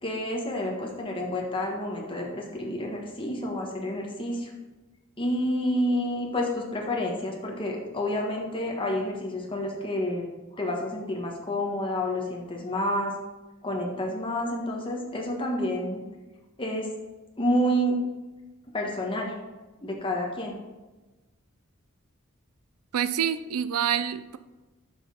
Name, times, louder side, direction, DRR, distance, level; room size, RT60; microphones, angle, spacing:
voice 1, 0.0-4.5 5.2-10.3 10.5-13.1 13.6-16.0 16.6-16.9 17.4-18.0 18.7-19.4 19.8-20.6, equal, 25° left, 0 dB, 1.4 m, -29 dB
voice 2, 22.9-24.4, right 9 dB, 85° right, 14 dB, 0.4 m, -27 dB
6.5 x 5.5 x 5.8 m, 1.1 s
head